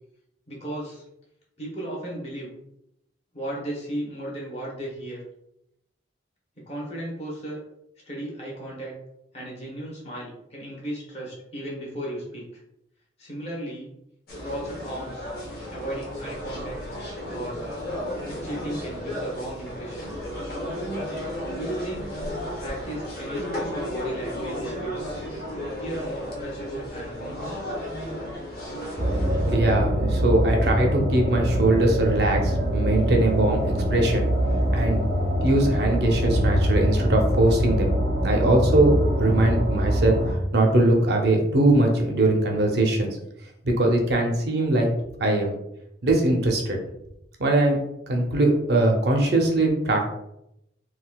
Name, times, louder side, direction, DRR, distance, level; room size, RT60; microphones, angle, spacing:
voice 1, 0.5-1.0 1.6-2.5 3.3-5.2 6.6-7.6 8.1-8.9 9.3-12.6 13.2-13.9 14.4-15.3 15.7-16.8 17.3-17.9 18.2-20.1 21.5-22.2 22.6-25.1 25.5-27.6, right 1 dB, 35° left, -4 dB, 1.1 m, -35 dB
sound 1, 14.3-29.6, equal, 55° left, 0.8 m, -34 dB
sound 2, 29.0-40.3, equal, 90° right, 0.9 m, -24 dB
voice 2, 29.5-34.3 34.7-35.0 35.4-37.9 38.2-43.1 43.6-44.9 45.2-45.6 46.0-46.8 47.4-47.8 48.1-50.0, right 2 dB, 60° right, 2 dB, 0.6 m, -21 dB
3.9 x 2.3 x 2.3 m, 0.82 s
head